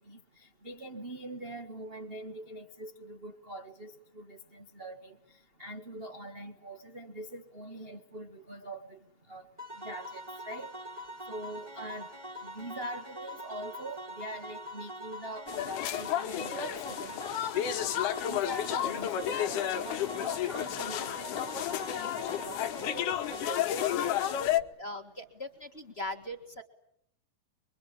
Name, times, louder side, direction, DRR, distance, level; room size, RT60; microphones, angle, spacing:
voice 1, 0.6-5.1 5.6-9.0 9.3-9.5 9.8-10.7 11.3-12.1 12.4-17.2 17.6-17.7 18.3-23.2, right 1 dB, 45° right, 3 dB, 0.7 m, -43 dB
sound 1, 9.6-24.3, equal, 10° right, 2.9 m, -43 dB
sound 2, 15.5-24.6, left 11 dB, 70° left, 2.6 m, -32 dB
voice 2, 24.8-26.6, left 1 dB, 25° left, 3 dB, 1.4 m, -40 dB
24.5 x 24.0 x 9.0 m, 0.73 s
omnidirectional pair, 3.8 m